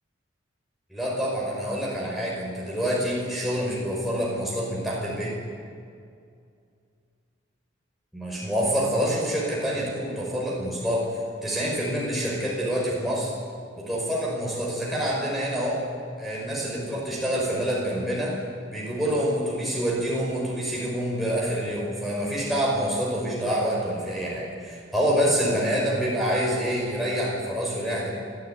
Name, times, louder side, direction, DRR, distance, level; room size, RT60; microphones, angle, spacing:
voice 1, 0.9-5.4 8.1-11.1 11.4-13.3 13.8-15.8 16.2-18.4 18.7-28.1, equal, ahead, -5 dB, 5.3 m, -27 dB
29.5 x 13.0 x 9.4 m, 2.3 s
head